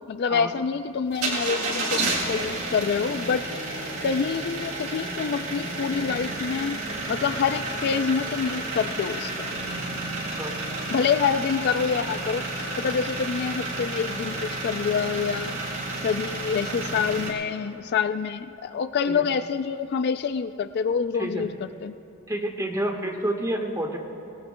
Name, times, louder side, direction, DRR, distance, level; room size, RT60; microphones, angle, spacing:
voice 1, 0.1-6.8 7.1-9.5 10.9-15.6 16.0-21.5 21.8-21.9, left 6 dB, 50° left, 11 dB, 0.3 m, -27 dB
sound 1, 1.1-17.3, right 2 dB, 80° right, 3.4 m, -31 dB
voice 2, 21.1-21.5 22.3-24.0, right 1 dB, 15° right, 2 dB, 1.3 m, -29 dB
24.5 x 18.5 x 2.2 m, 2.9 s
head